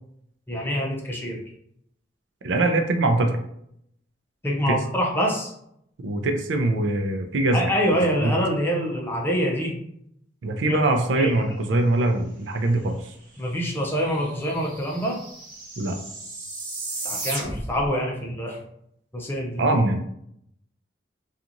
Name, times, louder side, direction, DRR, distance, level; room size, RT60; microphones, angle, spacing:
voice 1, 0.5-1.4 4.4-5.5 7.5-9.7 10.7-10.8 11.2-11.3 13.4-15.2 17.0-18.6 19.1-19.6, equal, 10° left, -1 dB, 0.5 m, -25 dB
voice 2, 2.4-3.4 4.7-4.8 6.0-7.7 8.2-8.3 10.4-13.1 15.8-16.0 19.6-20.0, right 2 dB, 85° right, 5 dB, 0.4 m, -22 dB
sound 1, 13.4-13.5 13.7-17.9, right 2 dB, 50° right, 0.9 m, -35 dB
2.8 x 2.4 x 2.5 m, 0.72 s
head